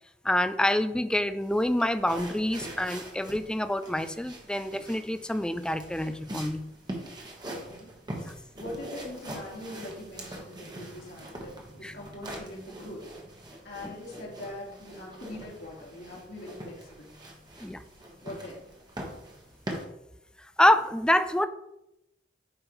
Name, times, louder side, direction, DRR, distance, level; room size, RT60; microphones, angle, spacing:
voice 1, 0.2-6.6 8.2-8.3 11.8-11.9 13.8-13.9 17.6-17.8 20.6-21.5, left 1 dB, 5° left, 10 dB, 0.3 m, -26 dB
sound 1, 1.4-19.8, right 1 dB, 25° right, 1.2 m, -43 dB
voice 2, 7.4-7.9 8.6-13.1 13.6-17.1 18.2-18.6, left 1 dB, 65° left, -2 dB, 2.1 m, -42 dB
9.0 x 5.2 x 3.1 m, 0.86 s
head